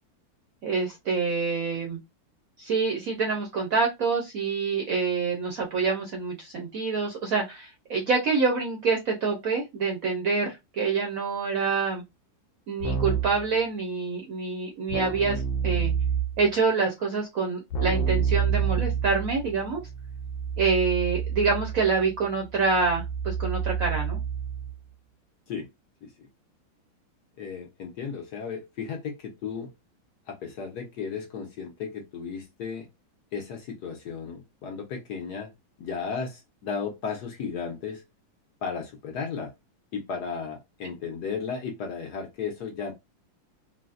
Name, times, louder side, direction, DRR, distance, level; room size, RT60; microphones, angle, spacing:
voice 1, 0.6-2.0 2.6-12.0 12.7-15.9 16.4-19.8 20.6-24.2, right 4 dB, 65° right, 0.9 m, -26 dB
Keyboard (musical), 12.8-13.5 14.9-16.5 17.7-24.8, right 7 dB, 80° left, 1.4 m, -29 dB
voice 2, 27.4-29.7 30.3-32.9 33.3-35.5 35.8-38.0 38.6-39.5 39.9-42.9, left 6 dB, 65° left, 1.1 m, -34 dB
3.9 x 2.1 x 2.4 m
omnidirectional pair, 2.2 m